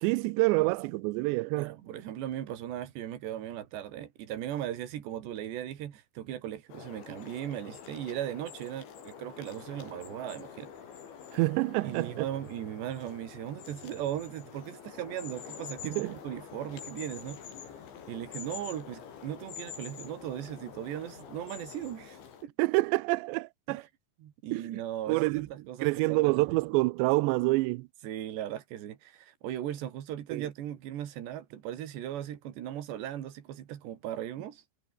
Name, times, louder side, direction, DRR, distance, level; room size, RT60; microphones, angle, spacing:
voice 1, 0.0-1.8 11.3-12.3 15.8-16.2 22.6-23.8 24.5-24.8 25.1-25.5 25.8-27.9 30.3-30.5, right 23 dB, 85° right, 2.5 m, -27 dB
voice 2, 1.6-10.7 11.8-17.6 18.1-22.5 23.7-23.8 24.2-26.6 28.0-34.6, right 11 dB, 65° right, 4.2 m, -38 dB
sound 1, 6.7-22.4, left 7 dB, 65° left, 6.3 m, -46 dB
omnidirectional pair, 5.8 m